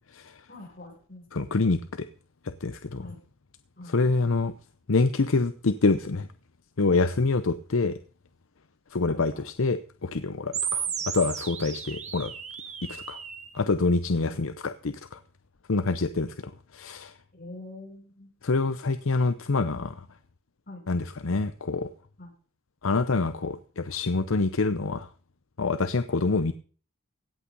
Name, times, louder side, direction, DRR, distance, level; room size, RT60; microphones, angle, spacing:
voice 1, 0.5-1.5 3.0-3.2 3.8-4.0 9.1-9.2 11.0-11.1 14.2-14.4 17.3-18.3 20.7-20.8 22.2-22.3, left 2 dB, 40° left, 6.5 m, -44 dB
voice 2, 1.3-2.1 2.6-3.0 3.9-4.5 4.9-6.3 6.8-8.0 8.9-10.9 11.1-12.3 12.9-13.2 13.5-15.2 15.7-16.3 16.7-17.1 18.4-20.0 20.9-21.9 22.8-25.1 25.6-26.5, left 3 dB, 70° left, 0.7 m, -26 dB
sound 1, 10.5-13.5, right 7 dB, 30° right, 1.5 m, -34 dB
16.5 x 8.7 x 5.4 m
head